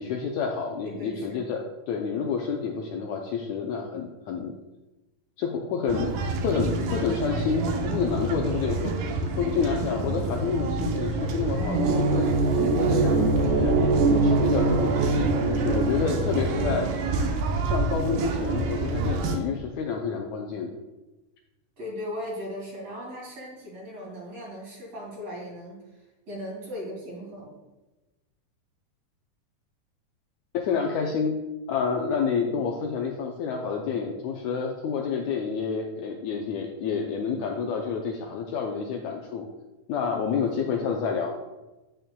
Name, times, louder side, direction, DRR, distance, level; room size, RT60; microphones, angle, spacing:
voice 1, 0.0-4.5 5.4-6.1 6.4-16.9 17.6-20.7 30.5-31.4 31.7-39.5 39.9-41.3, left 5 dB, 75° left, 1 dB, 1.7 m, -29 dB
voice 2, 0.8-1.4 21.8-25.8 26.3-27.6 32.3-32.6 40.4-40.8, equal, 55° right, -4 dB, 3.5 m, -38 dB
sound 1, 5.9-19.4, right 3 dB, 80° right, 2.3 m, -25 dB
9.0 x 8.8 x 2.2 m, 1.1 s
omnidirectional pair, 3.8 m